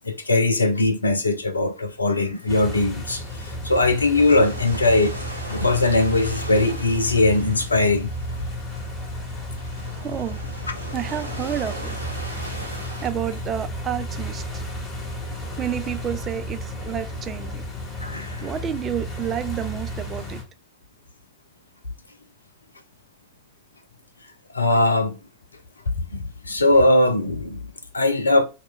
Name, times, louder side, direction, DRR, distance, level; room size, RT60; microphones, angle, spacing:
voice 1, 0.0-5.1 5.5-8.1 18.0-18.5 24.5-25.2 26.1-27.6 27.9-28.5, left 2 dB, 80° left, 0.5 m, -20 dB
sound 1, 2.4-13.1, right 1 dB, 85° right, 0.8 m, -40 dB
sound 2, 2.5-20.4, equal, 25° left, 1.8 m, -33 dB
voice 2, 9.9-10.4 10.9-12.0 13.0-14.6 15.6-17.6 18.4-20.4, right 10 dB, 25° right, 0.3 m, -30 dB
2.9 x 2.2 x 3.8 m
figure-of-eight pair, 90°, 0 cm